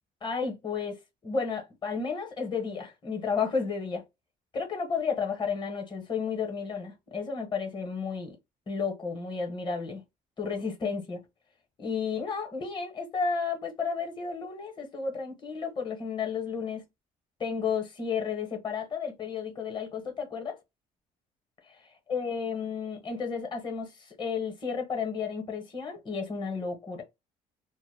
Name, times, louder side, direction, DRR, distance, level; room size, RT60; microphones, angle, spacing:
voice 1, 0.2-1.0 1.2-4.0 4.5-8.4 8.7-10.0 10.4-11.2 11.8-16.8 17.4-20.6 22.1-27.0, left 5 dB, 30° left, 0.9 m, -32 dB
2.1 x 2.0 x 3.3 m
cardioid pair, 100°, 16 cm